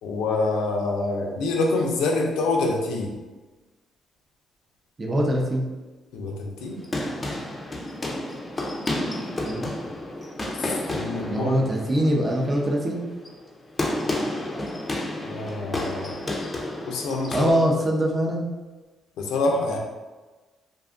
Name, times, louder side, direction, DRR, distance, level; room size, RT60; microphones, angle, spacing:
voice 1, 0.0-3.1 6.1-6.8 10.5-11.6 15.2-16.2 16.9-17.6 19.2-19.8, left 3 dB, 90° left, 1 dB, 0.4 m, -26 dB
voice 2, 5.0-5.7 9.4-9.7 11.3-13.0 17.3-18.5, equal, 30° right, 0 dB, 0.5 m, -23 dB
sound 1, 6.6-17.5, left 1 dB, 25° left, 0.4 m, -31 dB
2.5 x 2.3 x 2.4 m, 1.2 s
cardioid pair, 90°, 0 cm